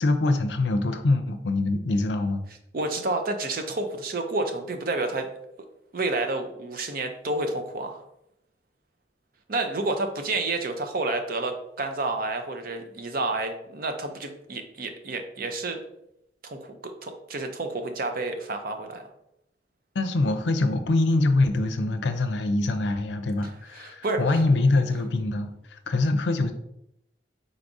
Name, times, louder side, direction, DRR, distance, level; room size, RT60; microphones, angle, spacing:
voice 1, 0.0-2.4 19.9-26.5, left 2 dB, 80° left, 8 dB, 0.5 m, -24 dB
voice 2, 2.7-5.3 5.9-8.0 9.5-15.8 16.4-19.1 23.7-24.4, right 2 dB, 55° right, 6 dB, 0.6 m, -30 dB
4.7 x 4.0 x 2.6 m, 0.79 s
head